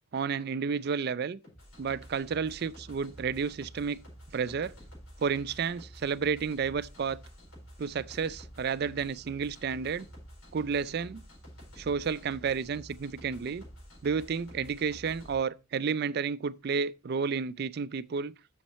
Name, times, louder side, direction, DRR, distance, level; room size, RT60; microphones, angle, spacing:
voice 1, 0.1-1.4 1.8-4.0 4.3-4.7 5.2-7.2 7.8-10.1 10.5-11.2 11.8-13.6 14.0-18.3, right 6 dB, 50° right, 0.4 m, -31 dB
sound 1, 1.4-15.3, equal, 85° left, 4.4 m, -50 dB
7.4 x 6.5 x 4.2 m
head